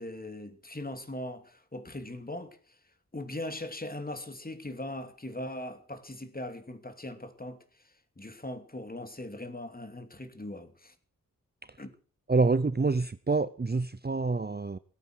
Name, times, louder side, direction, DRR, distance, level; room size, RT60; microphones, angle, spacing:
voice 1, 0.0-2.6 3.1-7.6 8.2-10.9 11.8-11.9, left 1 dB, 25° left, 2.7 m, -40 dB
voice 2, 12.3-14.8, right 3 dB, 30° right, 0.7 m, -27 dB
18.5 x 8.9 x 7.9 m
wide cardioid pair, 85°, 33 cm